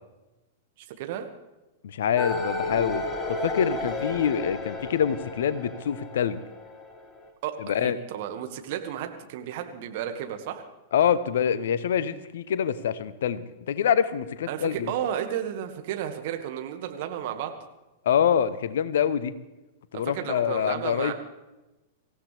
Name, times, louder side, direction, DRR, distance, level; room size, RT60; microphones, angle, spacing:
voice 1, 1.0-1.3 7.4-10.6 14.5-17.6 19.9-21.1, right 10 dB, 50° right, 6 dB, 1.9 m, -33 dB
voice 2, 1.8-6.4 7.6-8.0 10.9-14.9 18.0-19.3 19.9-21.1, left 8 dB, 65° left, 15 dB, 0.9 m, -25 dB
sound 1, 2.2-7.3, left 2 dB, 20° left, 2.0 m, -32 dB
25.0 x 15.5 x 3.5 m, 1.0 s
figure-of-eight pair, 100°, 0 cm